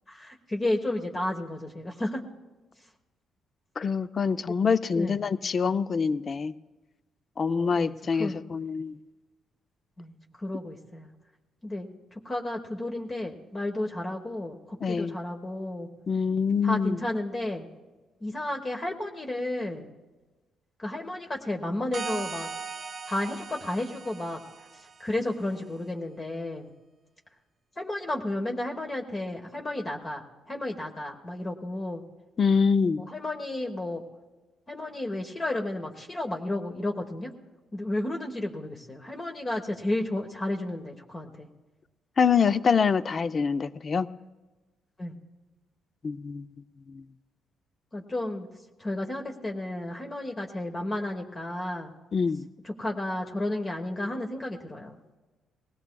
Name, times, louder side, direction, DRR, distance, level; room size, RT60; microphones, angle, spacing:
voice 1, 0.1-2.2 4.9-5.2 7.5-8.4 10.0-11.1 11.6-15.9 16.6-17.7 18.2-19.9 20.8-22.5 23.1-24.4 24.7-26.7 27.8-32.0 33.0-34.0 34.7-37.3 37.7-41.5 45.0-45.2 47.9-48.5 48.8-51.9 52.6-55.0, left 1 dB, 30° left, 1 dB, 1.2 m, -32 dB
voice 2, 3.8-6.5 7.4-9.0 14.8-15.2 16.1-17.0 32.4-33.0 42.2-44.1 46.0-46.5 46.9-47.0 52.1-52.5, left 5 dB, 45° left, 13 dB, 0.5 m, -25 dB
sound 1, 21.9-25.3, right 5 dB, 45° right, 0.8 m, -39 dB
20.5 x 17.0 x 2.3 m, 1.2 s
cardioid pair, 90°, 0 cm